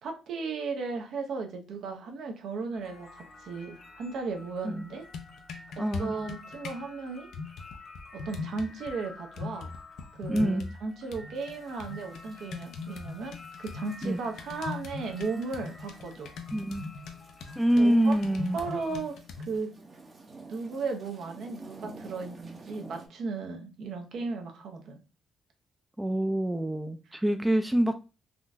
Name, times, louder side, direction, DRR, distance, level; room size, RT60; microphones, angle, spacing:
voice 1, 0.0-5.1 5.8-7.3 8.1-9.7 10.2-16.3 17.8-18.2 18.5-19.7 20.5-25.0, right 4 dB, 70° right, 0.7 m, -36 dB
sound 1, 2.7-19.0, left 3 dB, 45° left, 0.8 m, -51 dB
sound 2, 4.9-6.8 7.3-8.9 9.4-10.8 11.1-19.6, left 4 dB, 75° left, 0.5 m, -41 dB
voice 2, 5.8-6.2 10.3-10.7 14.0-14.2 16.5-16.9 17.6-18.6 26.0-28.0, right 1 dB, 10° right, 0.4 m, -26 dB
sound 3, 11.4-23.1, right 3 dB, 35° right, 0.7 m, -52 dB
3.7 x 2.3 x 2.5 m
cardioid pair, 90°, 0 cm